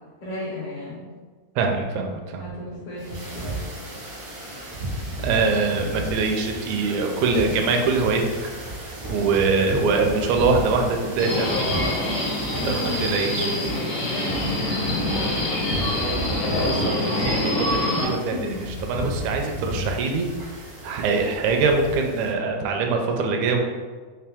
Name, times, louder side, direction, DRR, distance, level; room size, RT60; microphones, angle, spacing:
voice 1, 0.2-1.1 2.4-3.6 12.5-13.7 13.9-16.4 18.3-18.7 19.6-19.9, left 1 dB, 60° left, -6 dB, 1.9 m, -34 dB
voice 2, 1.6-2.4 5.2-8.2 9.1-11.8 12.7-13.5 16.5-18.5 18.8-20.3 20.8-23.6, right 4 dB, 80° right, 2 dB, 1.8 m, -23 dB
sound 1, 3.0-22.3, right 1 dB, 55° right, 1.0 m, -34 dB
Subway metro underground, 11.2-18.0, left 1 dB, 75° left, 0.9 m, -25 dB
5.9 x 2.6 x 3.5 m, 1.5 s
omnidirectional pair, 3.5 m